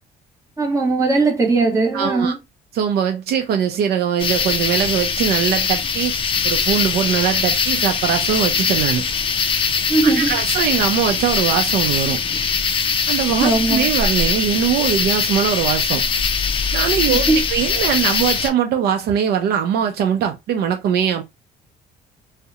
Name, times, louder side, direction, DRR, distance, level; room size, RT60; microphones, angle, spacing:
voice 1, 0.6-2.4 9.9-10.4 13.4-13.9 17.0-17.4 18.1-18.2, right 3 dB, 20° right, 0.9 m, -19 dB
voice 2, 1.9-2.3 2.7-6.1 6.4-9.0 10.0-12.2 13.1-16.0 16.7-21.2, right 8 dB, 70° right, 0.5 m, -21 dB
sound 1, 4.2-18.5, left 5 dB, 30° left, 0.4 m, -21 dB
2.7 x 2.1 x 2.3 m
cardioid pair, 110°, 17 cm